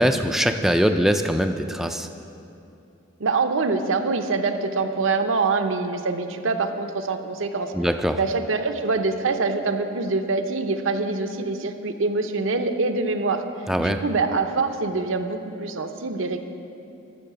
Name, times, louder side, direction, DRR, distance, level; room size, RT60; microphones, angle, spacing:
voice 1, 0.0-2.1 7.7-8.2 13.7-14.0, equal, ahead, 6 dB, 0.3 m, -22 dB
voice 2, 3.2-7.7 8.2-13.4 13.8-16.4, right 3 dB, 75° right, 7 dB, 0.7 m, -25 dB
14.0 x 6.4 x 6.9 m, 2.7 s
head